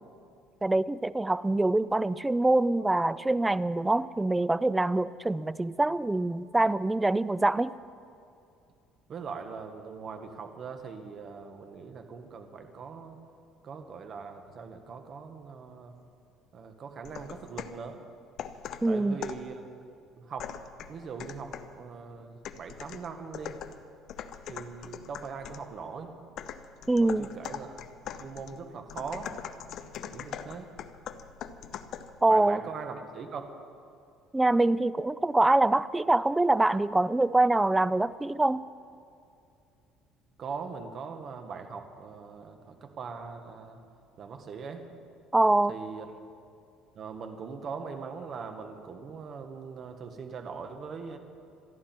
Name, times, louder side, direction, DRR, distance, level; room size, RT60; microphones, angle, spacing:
voice 1, 0.6-7.7 18.8-19.2 26.9-27.3 32.2-32.6 34.3-38.6 45.3-45.7, right 2 dB, 10° right, 17 dB, 0.3 m, -24 dB
voice 2, 9.1-13.2 13.6-15.9 16.5-18.0 18.8-20.5 20.9-23.6 24.5-26.1 27.0-27.8 28.2-29.3 30.1-30.7 32.3-33.4 40.4-43.8 44.2-44.8 45.7-46.1 46.9-51.2, right 5 dB, 40° right, 6 dB, 1.5 m, -41 dB
sound 1, 17.0-17.8 18.4-19.5 20.4-21.8 22.4-25.7 26.4-32.2, left 9 dB, 55° left, 0.8 m, -42 dB
26.5 x 11.5 x 4.5 m, 2.5 s
cardioid pair, 145°, 0 cm